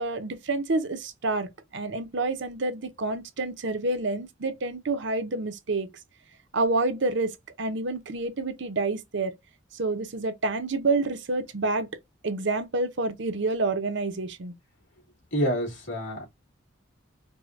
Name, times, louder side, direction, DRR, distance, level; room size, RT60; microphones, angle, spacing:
voice 1, 0.0-5.9 6.5-9.3 9.7-11.9 12.2-14.5, right 3 dB, 60° right, 0.7 m, -28 dB
voice 2, 15.3-16.3, equal, 65° left, 2.5 m, -27 dB
4.8 x 2.2 x 2.5 m
head